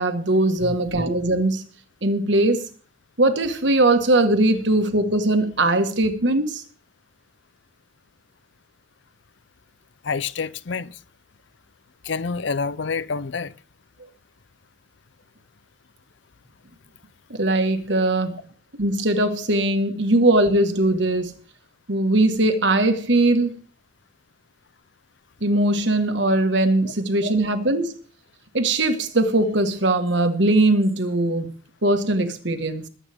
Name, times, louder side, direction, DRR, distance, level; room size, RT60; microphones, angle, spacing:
voice 1, 0.0-1.7 2.0-2.7 3.2-6.6 17.3-18.4 18.8-21.4 21.9-23.6 25.4-28.0 28.5-31.5 31.8-32.9, right 2 dB, 65° right, 1.6 m, -20 dB
voice 2, 10.0-11.0 12.0-13.5, left 5 dB, 65° left, 0.6 m, -27 dB
21.0 x 8.3 x 3.6 m
head